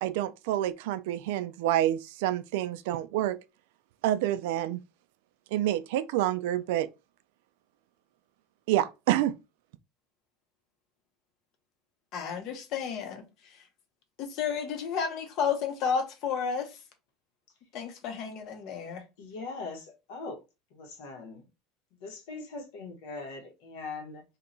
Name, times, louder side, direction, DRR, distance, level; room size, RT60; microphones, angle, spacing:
voice 1, 0.0-3.4 4.0-4.8 5.5-6.9 8.7-9.3, right 13 dB, 75° right, 0.3 m, -28 dB
voice 2, 12.1-13.2 14.2-16.7 17.7-19.0, left 6 dB, 40° left, 0.7 m, -31 dB
voice 3, 19.2-20.4 20.7-21.4 22.0-24.2, left 3 dB, 75° left, 1.1 m, -41 dB
2.8 x 2.3 x 3.8 m
cardioid pair, 180°, 0 cm